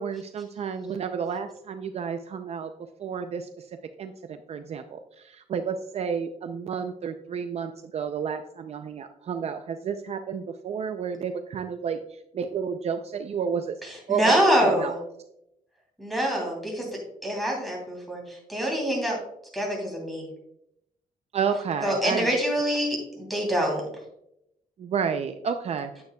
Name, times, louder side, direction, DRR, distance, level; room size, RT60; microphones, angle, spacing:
voice 1, 0.0-2.7 3.0-3.7 4.0-13.7 14.1-14.3 14.7-14.9 21.3-22.3 24.8-25.9, right 6 dB, 50° right, 7 dB, 0.4 m, -31 dB
voice 2, 13.8-15.0 16.0-16.9 17.2-19.2 19.5-20.3 21.8-23.8, equal, ahead, -1 dB, 2.9 m, -25 dB
9.3 x 9.2 x 2.2 m, 0.79 s
wide cardioid pair, 155°, 14 cm